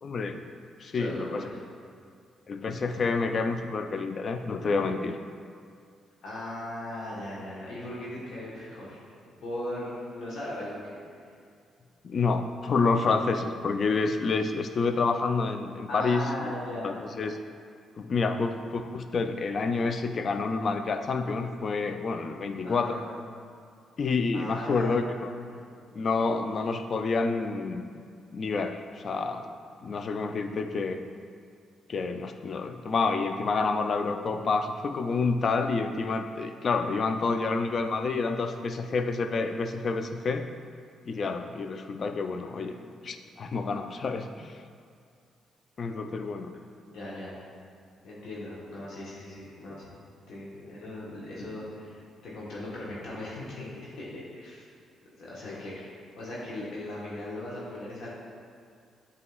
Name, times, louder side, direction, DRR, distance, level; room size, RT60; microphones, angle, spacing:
voice 1, 0.0-0.4 0.8-1.4 2.5-5.2 12.0-16.5 16.8-17.3 18.0-23.0 24.0-25.3 25.9-27.9 28.3-29.5 29.8-31.0 31.9-40.5 41.1-42.7 43.0-44.5 45.8-46.5 55.4-55.6, left 4 dB, 55° left, 8 dB, 0.3 m, -28 dB
voice 2, 0.9-1.6 6.2-9.0 9.4-10.8 15.9-17.0 18.3-18.7 22.6-23.0 24.3-25.6 42.4-42.7 46.8-47.4 48.0-49.9 50.3-54.6 55.1-55.9 56.2-58.1, left 1 dB, 70° left, -6 dB, 1.0 m, -38 dB
7.9 x 2.7 x 2.3 m, 2.3 s
supercardioid pair, 55°, 0 cm